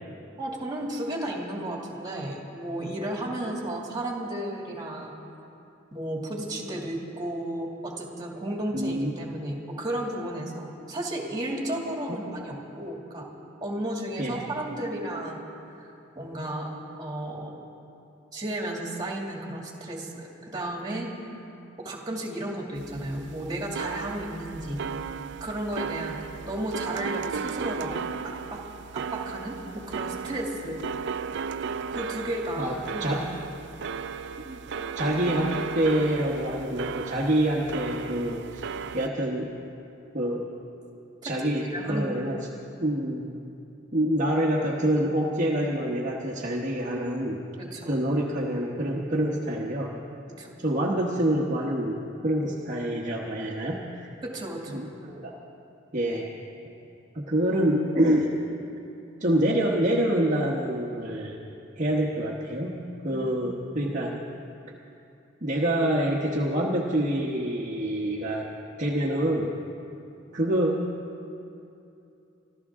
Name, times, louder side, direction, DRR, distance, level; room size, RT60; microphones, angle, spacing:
voice 1, 0.4-5.2 5.9-13.3 13.6-15.5 15.8-15.9 16.2-16.7 17.0-17.5 18.3-21.1 21.8-24.9 25.4-26.2 26.5-27.9 28.2-28.6 28.9-30.8 31.9-33.2 41.2-42.1 47.6-48.0 50.4-50.5 54.2-54.8 63.1-63.3, right 1 dB, 20° right, -1 dB, 2.4 m, -33 dB
voice 2, 8.7-9.1 12.1-12.2 14.2-14.4 32.6-33.2 34.5-34.6 34.9-38.6 38.9-39.5 40.1-40.4 41.2-42.4 42.8-43.3 43.9-47.4 47.9-49.9 50.6-54.0 54.7-55.3 55.9-56.2 57.1-58.3 59.2-61.4 61.8-62.7 63.0-64.1 65.4-68.5 68.8-69.5 70.3-70.8, right 1 dB, 40° right, -4 dB, 1.2 m, -26 dB
sound 1, 22.7-39.1, right 6 dB, 65° right, 0.4 m, -35 dB
26.5 x 13.0 x 3.7 m, 2.7 s
head